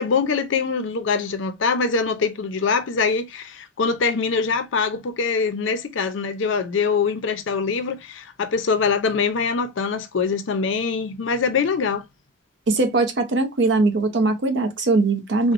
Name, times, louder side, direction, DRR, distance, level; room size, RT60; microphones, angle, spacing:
voice 1, 0.0-12.0 15.4-15.5, left 5 dB, 70° left, 0.5 m, -23 dB
voice 2, 12.7-15.5, right 3 dB, 60° right, 0.6 m, -20 dB
2.8 x 2.1 x 2.5 m
head